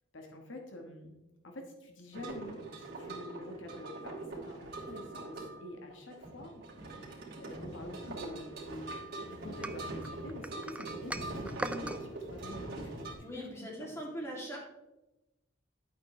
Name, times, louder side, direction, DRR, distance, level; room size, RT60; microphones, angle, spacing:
voice 1, 0.1-1.2 1.4-13.0 13.3-13.9, left 2 dB, 75° left, 3 dB, 1.4 m, -47 dB
sound 1, 2.1-13.1, right 2 dB, 55° right, 2.8 m, -43 dB
sound 2, 9.6-12.0, right 1 dB, 5° right, 0.3 m, -40 dB
voice 2, 13.2-14.6, equal, 15° left, -3 dB, 2.6 m, -41 dB
10.5 x 8.7 x 3.2 m, 0.97 s
head